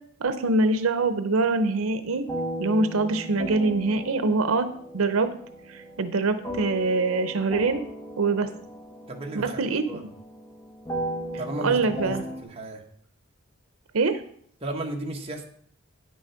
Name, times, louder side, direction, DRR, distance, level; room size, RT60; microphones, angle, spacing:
voice 1, 0.2-2.2 2.6-4.7 4.9-5.3 5.7-7.8 8.2-8.5 9.3-9.8 11.6-12.2 13.9-14.2, right 3 dB, 80° right, 10 dB, 0.7 m, -24 dB
sound 1, 2.3-12.4, right 1 dB, 15° left, 1.2 m, -36 dB
voice 2, 9.1-10.1 11.4-12.1 12.4-12.8 14.6-15.4, right 1 dB, 25° right, 0 dB, 1.2 m, -34 dB
9.2 x 6.3 x 5.7 m, 0.63 s
head